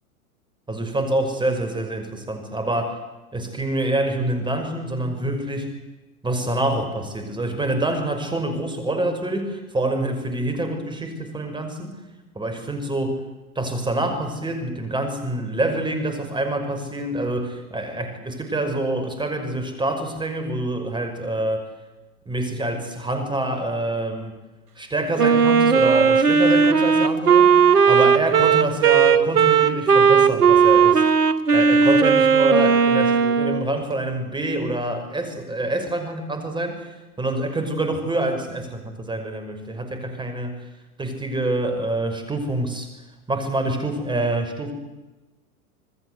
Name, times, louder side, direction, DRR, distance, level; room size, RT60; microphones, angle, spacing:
voice 1, 0.7-3.0 3.3-5.8 6.2-12.0 12.4-13.2 13.6-21.6 22.3-24.4 24.8-31.0 31.5-40.6 41.0-42.9 43.3-44.7, right 1 dB, 10° right, 6 dB, 5.8 m, -26 dB
Wind instrument woodwind instrument, 25.2-33.7, right 6 dB, 85° right, 1.8 m, -16 dB
27.0 x 20.5 x 8.3 m, 1.1 s
hypercardioid pair, 105°, 45 cm